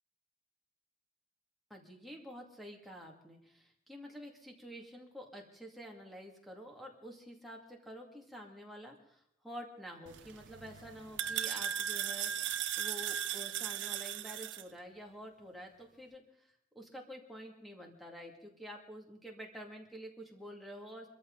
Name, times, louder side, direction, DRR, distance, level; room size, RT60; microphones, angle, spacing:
voice 1, 1.7-16.2 16.7-21.1, equal, ahead, 0 dB, 2.3 m, -49 dB
sound 1, 10.1-14.6, right 10 dB, 85° right, 0.6 m, -37 dB
24.5 x 14.0 x 4.0 m, 0.69 s
head